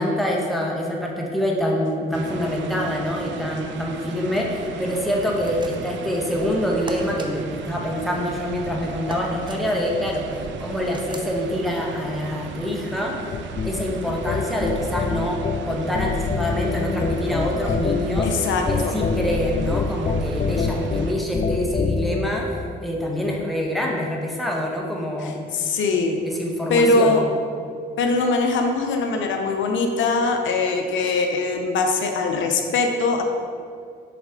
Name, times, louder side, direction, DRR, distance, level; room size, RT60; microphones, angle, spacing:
voice 1, 0.0-13.2 13.6-18.3 18.7-25.4 26.2-27.2, equal, ahead, -2 dB, 1.1 m, -25 dB
sound 1, 2.1-21.1, right 6 dB, 70° right, 0.5 m, -37 dB
sound 2, 5.4-6.0 6.9-7.3 9.1-9.6 10.9-11.3, right 2 dB, 25° right, 0.6 m, -37 dB
sound 3, 13.3-22.3, left 4 dB, 35° left, 0.4 m, -26 dB
voice 2, 18.2-19.0 25.2-26.2 26.7-27.2 28.0-33.2, left 3 dB, 75° left, 4 dB, 0.6 m, -22 dB
6.8 x 4.1 x 3.7 m, 2.3 s
cardioid pair, 90°, 20 cm